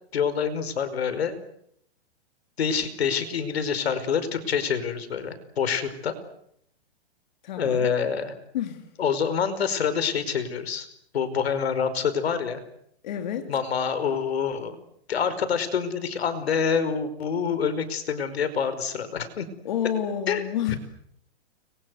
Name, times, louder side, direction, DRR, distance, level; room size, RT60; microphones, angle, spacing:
voice 1, 0.1-1.4 2.6-6.2 7.6-8.3 9.0-10.9 11.1-12.6 13.5-14.8 15.1-19.5 20.3-20.4 20.7-20.8, left 6 dB, 75° left, 13 dB, 5.2 m, -26 dB
voice 2, 7.4-7.9 8.5-8.9 13.0-13.5 19.6-20.7, left 9 dB, 45° left, 6 dB, 3.0 m, -29 dB
30.0 x 23.5 x 8.2 m, 0.74 s
hypercardioid pair, 170°, 32 cm